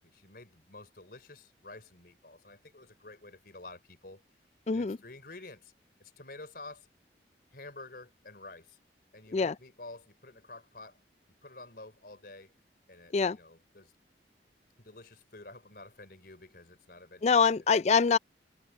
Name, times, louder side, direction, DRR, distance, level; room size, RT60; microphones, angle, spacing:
voice 1, 0.0-4.2 4.7-5.7 6.0-6.9 7.5-8.8 9.1-11.0 11.4-12.5 12.9-13.9 14.8-17.7, left 2 dB, 55° left, 4.3 m, -50 dB
voice 2, 4.7-5.0 9.3-9.5 13.1-13.4 17.2-18.2, left 5 dB, 35° left, 0.4 m, -24 dB
head